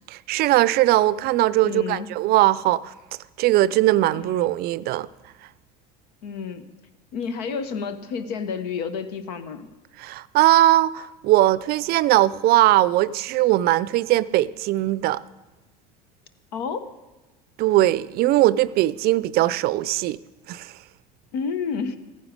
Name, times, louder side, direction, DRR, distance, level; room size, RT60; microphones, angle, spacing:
voice 1, 0.1-2.9 3.4-5.1 10.0-15.2 17.6-20.2 20.5-20.7, right 15 dB, 50° right, 0.4 m, -20 dB
voice 2, 1.6-2.1 4.2-4.5 6.2-6.6 7.1-9.7 16.5-16.9 21.3-22.0, left 6 dB, 80° left, 1.0 m, -30 dB
14.0 x 9.6 x 5.1 m
hypercardioid pair, 90°, 20 cm